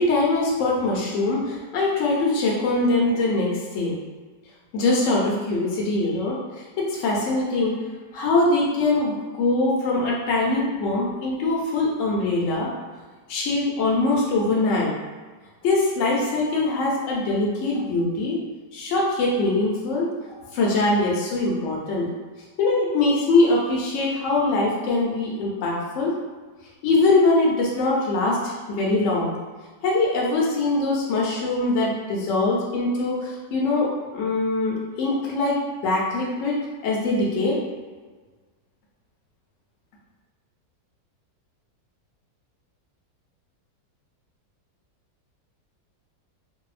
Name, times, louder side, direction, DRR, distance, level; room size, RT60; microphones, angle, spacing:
voice 1, 0.0-3.9 4.7-7.7 8.1-12.7 13.3-14.9 15.6-18.4 18.7-20.1 20.5-22.1 22.6-26.1 26.8-29.3 29.8-37.6, left 2 dB, 65° left, -4 dB, 0.8 m, -22 dB
2.7 x 2.1 x 2.3 m, 1.4 s
omnidirectional pair, 1.8 m